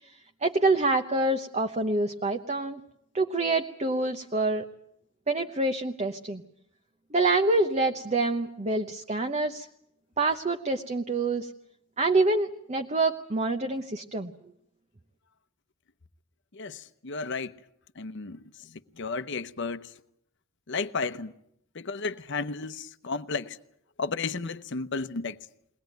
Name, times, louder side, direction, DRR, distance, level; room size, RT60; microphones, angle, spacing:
voice 1, 0.4-2.8 3.1-4.6 5.3-6.4 7.1-9.7 10.2-11.5 12.0-14.3, right 2 dB, 30° right, 0.9 m, -26 dB
voice 2, 16.5-17.5 18.0-18.4 19.0-19.9 20.7-21.3 21.7-23.6 24.0-25.4, left 4 dB, 55° left, 0.9 m, -33 dB
22.0 x 19.0 x 9.2 m
head